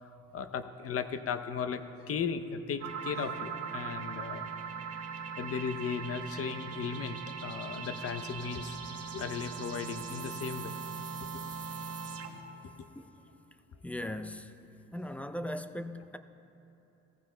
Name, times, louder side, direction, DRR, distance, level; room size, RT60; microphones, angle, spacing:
voice 1, 0.0-4.4 5.4-8.8 9.1-10.7 11.3-11.4 12.8-12.9, left 6 dB, 50° left, 0.7 m, -36 dB
sound 1, 2.8-12.5, right 5 dB, 55° right, 1.1 m, -40 dB
voice 2, 13.8-14.6 14.9-16.2, left 1 dB, 5° left, 0.4 m, -38 dB
17.5 x 14.5 x 2.2 m
cardioid pair, 90°, 30 cm